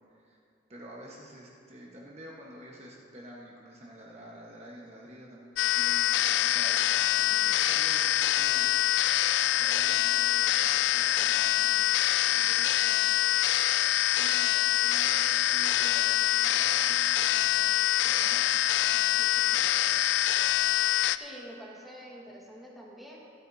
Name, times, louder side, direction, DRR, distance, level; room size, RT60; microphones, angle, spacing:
voice 1, 0.1-0.4 0.7-8.7 9.5-11.9 12.2-13.2 14.1-19.7, equal, 35° right, -3 dB, 1.3 m, -49 dB
sound 1, 5.6-21.2, left 12 dB, 80° left, 0.3 m, -25 dB
voice 2, 21.1-23.2, equal, ahead, -5 dB, 1.7 m, -46 dB
25.5 x 8.8 x 2.8 m, 2.6 s
head